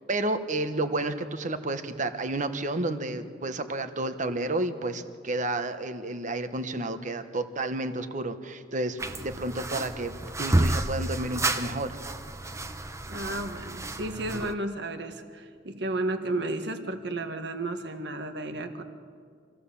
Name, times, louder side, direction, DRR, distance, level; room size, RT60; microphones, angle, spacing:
voice 1, 0.1-10.1 10.4-12.0, right 2 dB, 45° right, 9 dB, 1.3 m, -31 dB
sound 1, 9.0-14.5, right 1 dB, 15° right, 0.8 m, -30 dB
voice 2, 13.0-18.8, right 2 dB, 65° right, 7 dB, 1.7 m, -33 dB
26.5 x 15.0 x 7.1 m, 2.1 s
head